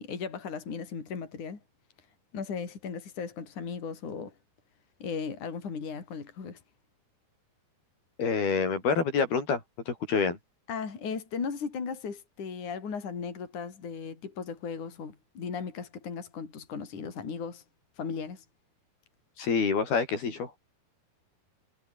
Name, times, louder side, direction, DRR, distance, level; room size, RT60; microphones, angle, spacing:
voice 1, 0.0-1.6 2.3-4.3 5.0-6.6 10.7-17.6 18.0-18.4, left 5 dB, 50° left, 5.8 m, -36 dB
voice 2, 8.2-9.6 9.9-10.4 19.4-20.6, left 5 dB, 75° left, 7.0 m, -27 dB
omnidirectional pair, 4.5 m